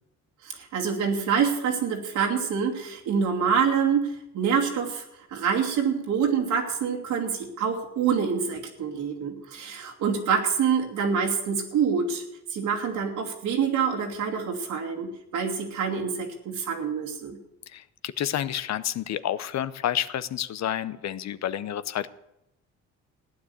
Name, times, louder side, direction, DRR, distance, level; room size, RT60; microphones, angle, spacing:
voice 1, 0.4-12.2 12.5-17.4, right 6 dB, 85° right, -1 dB, 2.8 m, -26 dB
voice 2, 17.7-22.1, left 11 dB, 65° left, 15 dB, 0.8 m, -29 dB
15.5 x 9.8 x 8.3 m, 0.85 s
cardioid pair, 90°, 30 cm